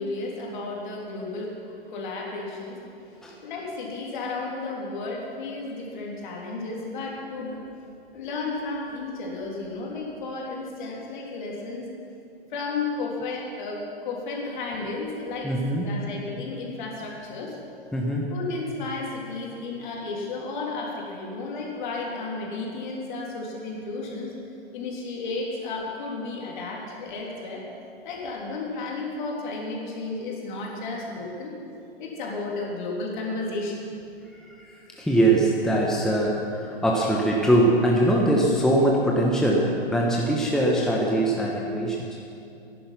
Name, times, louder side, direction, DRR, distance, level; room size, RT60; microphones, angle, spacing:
voice 1, 0.0-1.5 1.9-7.6 8.1-11.9 12.5-15.5 15.8-17.6 18.3-24.3 24.7-27.6 28.0-31.5 32.0-33.8, left 3 dB, 50° left, -2 dB, 3.5 m, -33 dB
voice 2, 15.4-15.9 17.9-18.3 34.5-42.1, right 1 dB, ahead, -2 dB, 1.2 m, -22 dB
14.5 x 11.0 x 6.0 m, 2.7 s
figure-of-eight pair, 115°, 31 cm